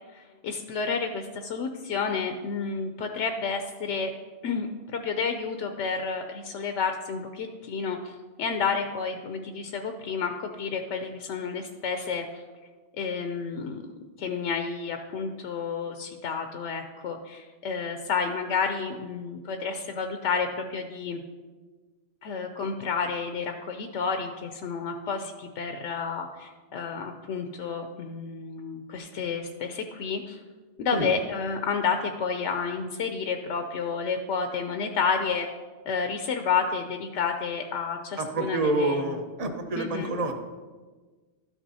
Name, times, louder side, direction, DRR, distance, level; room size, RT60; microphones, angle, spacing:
voice 1, 0.1-4.1 4.4-12.4 13.0-13.8 14.2-21.2 22.2-30.4 30.8-35.5 35.9-39.0 39.8-40.1, left 5 dB, 85° left, 6 dB, 0.9 m, -30 dB
voice 2, 38.2-40.4, right 2 dB, 40° right, 5 dB, 0.8 m, -28 dB
12.5 x 5.9 x 2.7 m, 1.4 s
omnidirectional pair, 1.2 m